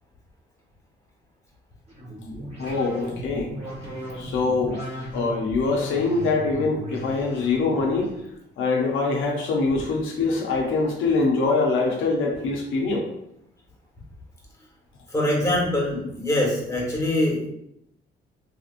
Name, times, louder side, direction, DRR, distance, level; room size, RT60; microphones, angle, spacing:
sound 1, 1.9-8.2, equal, 30° right, 1.4 m, -36 dB
voice 1, 2.6-3.5 4.1-4.8 5.1-8.1 8.6-13.1, left 3 dB, 80° left, -1 dB, 0.7 m, -24 dB
voice 2, 15.1-17.5, left 1 dB, 15° left, -4 dB, 1.4 m, -23 dB
3.4 x 2.8 x 2.5 m, 0.78 s
cardioid pair, 90°, 20 cm